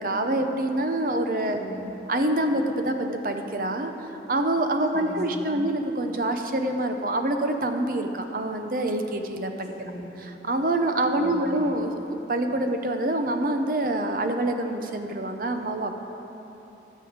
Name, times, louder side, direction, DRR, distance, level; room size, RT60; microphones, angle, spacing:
voice 1, 0.0-1.6 2.1-9.7 10.4-15.9, right 1 dB, 55° right, 5 dB, 0.7 m, -26 dB
voice 2, 1.5-1.9 4.9-5.6 9.7-10.1 11.2-11.7, equal, 70° left, -4 dB, 2.8 m, -38 dB
13.0 x 5.5 x 7.8 m, 3.0 s
head